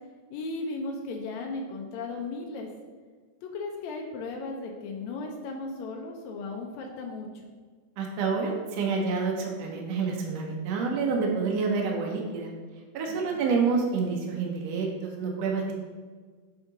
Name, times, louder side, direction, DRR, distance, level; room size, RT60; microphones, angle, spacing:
voice 1, 0.3-2.7 3.4-7.3 13.2-13.4, left 3 dB, 80° left, 1 dB, 1.7 m, -36 dB
voice 2, 8.0-12.5 12.9-15.7, right 4 dB, 75° right, 0 dB, 1.5 m, -28 dB
7.1 x 3.7 x 3.9 m, 1.5 s
omnidirectional pair, 3.8 m